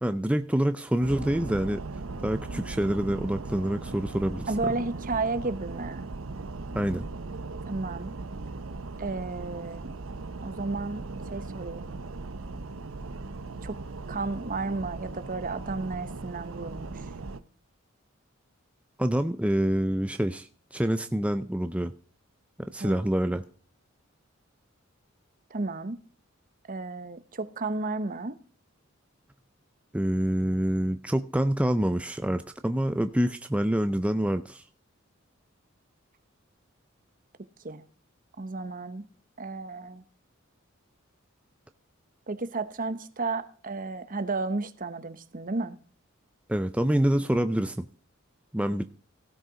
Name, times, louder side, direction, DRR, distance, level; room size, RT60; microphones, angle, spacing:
voice 1, 0.0-1.8 2.2-4.5 6.7-7.0 19.0-21.9 22.6-23.4 29.9-34.6 46.5-47.9 48.5-48.8, right 1 dB, 5° right, 0.5 m, -26 dB
sound 1, 1.0-17.4, right 3 dB, 80° right, 0.8 m, -38 dB
voice 2, 4.5-6.1 7.6-8.1 9.0-9.9 10.4-12.0 13.6-13.8 14.1-17.0 22.8-23.1 25.5-26.0 26.7-28.4 37.6-37.8 38.4-39.0 39.4-40.0 42.3-45.8, right 3 dB, 40° right, 0.9 m, -33 dB
16.5 x 6.6 x 4.9 m
head